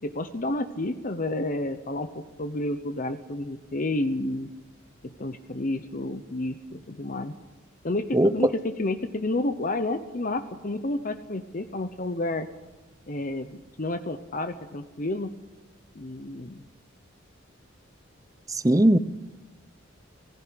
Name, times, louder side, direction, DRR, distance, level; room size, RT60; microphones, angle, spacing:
voice 1, 0.0-4.5 5.0-7.3 7.8-12.5 13.1-15.3 15.9-16.6, left 2 dB, 40° left, 8 dB, 0.9 m, -30 dB
voice 2, 8.1-8.5 18.5-19.0, right 1 dB, 15° right, 15 dB, 0.7 m, -20 dB
17.0 x 16.0 x 10.0 m, 1.1 s
head